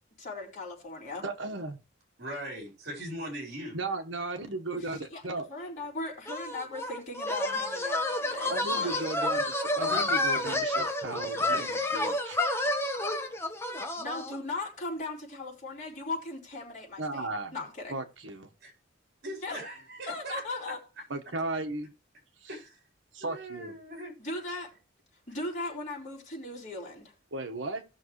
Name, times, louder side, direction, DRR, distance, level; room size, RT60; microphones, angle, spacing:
voice 1, 0.2-1.2 4.7-9.3 14.0-18.0 19.3-19.6 20.1-20.8 24.2-24.7 25.1-27.1, left 2 dB, 40° left, -3 dB, 4.3 m, -38 dB
voice 2, 1.2-1.8 3.7-5.5 8.5-12.4 17.0-17.5 17.9-18.5 21.1-21.9 22.4-22.5 23.1-23.7 27.3-27.8, right 2 dB, 80° right, 6 dB, 1.4 m, -35 dB
voice 3, 2.2-3.8 9.8-10.0 11.3-11.6 18.6-18.7 19.2-20.4 22.5-22.8 23.2-24.1, right 1 dB, 55° right, 0 dB, 4.2 m, -39 dB
sound 1, 6.3-14.4, left 2 dB, 15° left, 1.2 m, -30 dB
18.0 x 6.2 x 3.2 m, 0.32 s
head